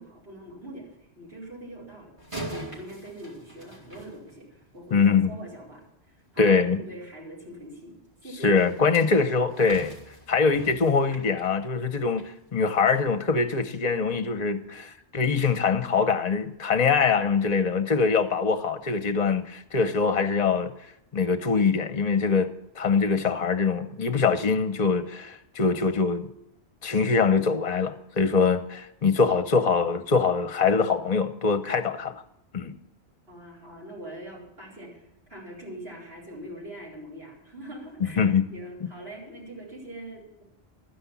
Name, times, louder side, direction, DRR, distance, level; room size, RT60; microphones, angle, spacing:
voice 1, 0.0-7.9 8.2-8.7 33.3-40.4, right 1 dB, 65° right, 4.8 m, -43 dB
rocks rolling with metal violent hits, 2.2-4.8 8.5-12.3 12.7-13.0 13.5-13.6, right 1 dB, 30° right, 3.1 m, -42 dB
voice 2, 4.9-5.3 6.4-6.8 8.4-10.0 10.3-20.7 21.1-22.5 22.8-26.3 26.8-32.1 32.5-32.7 38.2-38.5, left 5 dB, 40° left, 0.9 m, -23 dB
12.5 x 9.9 x 7.2 m
omnidirectional pair, 1.1 m